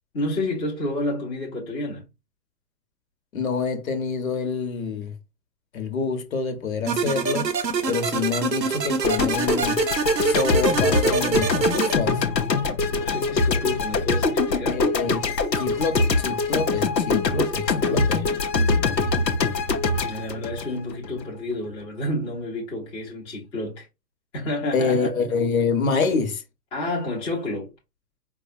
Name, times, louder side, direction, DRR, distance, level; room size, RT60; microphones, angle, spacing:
voice 1, 0.1-2.0 12.9-14.8 19.9-23.9 24.3-25.1 26.7-27.7, left 1 dB, 10° left, 0.8 m, -30 dB
voice 2, 3.3-5.1 5.7-7.5 7.9-9.8 10.2-12.2 14.7-18.3 24.7-26.4, left 4 dB, 55° left, 1.1 m, -26 dB
sound 1, 6.9-11.9, right 5 dB, 85° right, 0.7 m, -25 dB
sound 2, 9.0-21.3, left 3 dB, 80° left, 0.9 m, -23 dB
4.8 x 2.3 x 2.6 m
figure-of-eight pair, 130°, 50 cm